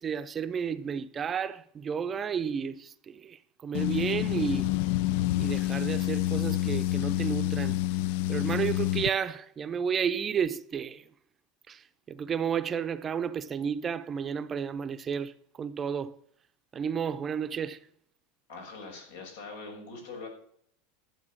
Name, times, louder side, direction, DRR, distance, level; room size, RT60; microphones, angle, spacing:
voice 1, 0.0-4.7 5.4-7.8 8.3-11.1 11.7-16.2 16.7-17.8, right 7 dB, 25° right, 0.7 m, -32 dB
sound 1, 3.7-9.1, left 15 dB, 65° left, 0.4 m, -28 dB
voice 2, 18.5-20.3, left 3 dB, 85° left, 6.1 m, -42 dB
12.5 x 7.9 x 6.4 m
supercardioid pair, 135°, 0 cm